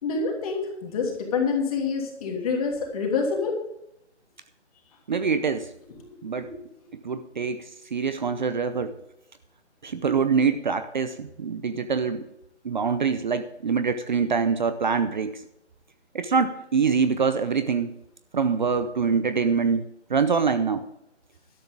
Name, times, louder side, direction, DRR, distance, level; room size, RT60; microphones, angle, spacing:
voice 1, 0.0-3.6 5.9-6.6, left 4 dB, 30° left, 1 dB, 3.1 m, -27 dB
voice 2, 5.1-5.7 6.2-6.5 7.0-9.0 9.8-12.3 12.6-15.4 16.1-17.9 18.3-19.8 20.1-20.9, right 5 dB, 40° right, 11 dB, 0.7 m, -24 dB
13.5 x 12.0 x 3.6 m, 0.82 s
hypercardioid pair, 160°, 35 cm